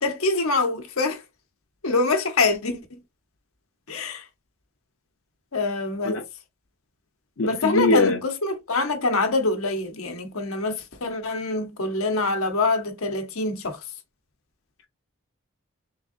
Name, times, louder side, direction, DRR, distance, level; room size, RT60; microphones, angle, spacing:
voice 1, 0.0-1.2 1.8-3.0 3.9-4.2 5.5-6.2 7.4-13.8, left 3 dB, 90° left, 1.0 m, -25 dB
voice 2, 7.4-8.2, left 2 dB, 70° left, 0.7 m, -21 dB
3.7 x 3.6 x 2.5 m
head